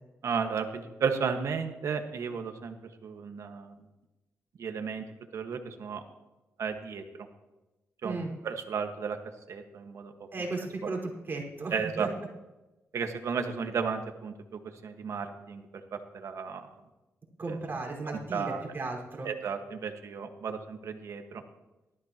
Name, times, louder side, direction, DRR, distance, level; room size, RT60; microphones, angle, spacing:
voice 1, 0.2-2.7 3.0-3.7 4.6-5.0 5.3-6.0 6.6-7.0 8.0-8.2 8.4-9.2 9.5-10.1 10.8-10.9 11.7-12.1 12.9-15.6 15.9-16.7 17.5-17.6 18.1-18.7 19.2-21.4, right 6 dB, 70° right, 5 dB, 1.6 m, -33 dB
voice 2, 10.3-12.1 17.4-19.3, right 3 dB, 40° right, -1 dB, 5.0 m, -35 dB
18.5 x 14.0 x 3.0 m, 1.0 s
cardioid pair, 75°, 5 cm